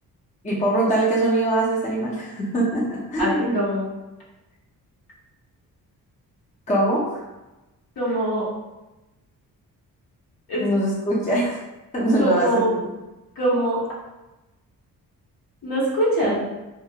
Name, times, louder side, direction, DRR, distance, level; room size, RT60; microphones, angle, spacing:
voice 1, 0.4-3.7 6.7-7.2 10.6-11.6 11.9-12.9 16.2-16.3, right 1 dB, 20° left, -5 dB, 0.6 m, -22 dB
voice 2, 3.2-3.9 8.0-8.5 10.5-10.6 12.2-12.8 13.3-13.8 15.6-16.4, right 1 dB, 65° left, -6 dB, 1.1 m, -23 dB
2.4 x 2.0 x 2.7 m, 1.0 s
cardioid pair, 80°, 37 cm